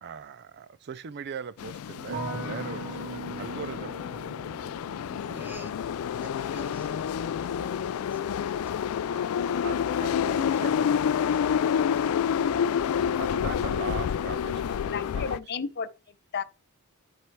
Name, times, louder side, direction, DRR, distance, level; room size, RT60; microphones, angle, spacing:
voice 1, 0.0-4.0 5.1-5.5 8.6-8.7 9.1-11.3 13.2-15.4, right 6 dB, 50° right, 0.4 m, -41 dB
sound 1, 1.6-15.4, left 8 dB, 70° left, 0.3 m, -28 dB
sound 2, 2.1-13.2 13.4-14.2, right 2 dB, 65° right, 2.7 m, -43 dB
voice 2, 5.3-5.7 6.1-9.3, right 1 dB, 10° right, 1.3 m, -50 dB
sound 3, 6.5-7.3 7.6-8.0 8.3-14.8, equal, 85° right, 2.6 m, -55 dB
voice 3, 14.9-16.4, left 6 dB, 50° left, 0.7 m, -33 dB
10.0 x 4.4 x 4.6 m
head